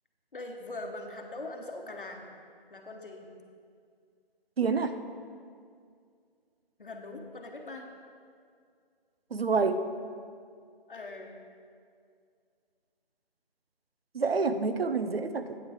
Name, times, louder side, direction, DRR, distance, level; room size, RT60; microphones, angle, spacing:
voice 1, 0.3-2.3 2.7-3.3 6.8-7.9 10.9-11.3, left 2 dB, 60° left, 3 dB, 1.1 m, -41 dB
voice 2, 4.6-5.0 9.3-9.9 14.1-15.4, right 4 dB, 80° right, 10 dB, 0.7 m, -27 dB
8.9 x 7.4 x 4.8 m, 2.2 s
figure-of-eight pair, 165°, 30 cm